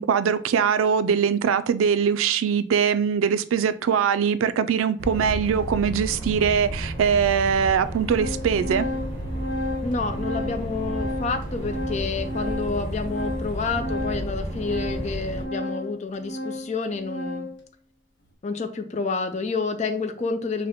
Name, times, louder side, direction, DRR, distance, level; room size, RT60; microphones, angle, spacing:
voice 1, 0.0-8.9, right 7 dB, 85° right, 13 dB, 0.3 m, -22 dB
sound 1, 5.0-15.4, right 1 dB, 50° right, 1.5 m, -32 dB
Organ, 6.4-6.5 7.3-7.4 7.7-17.6, left 1 dB, 55° left, 1.0 m, -33 dB
voice 2, 9.8-17.5 18.4-20.7, left 4 dB, 35° left, 7 dB, 0.4 m, -29 dB
5.0 x 2.1 x 4.1 m, 0.43 s
head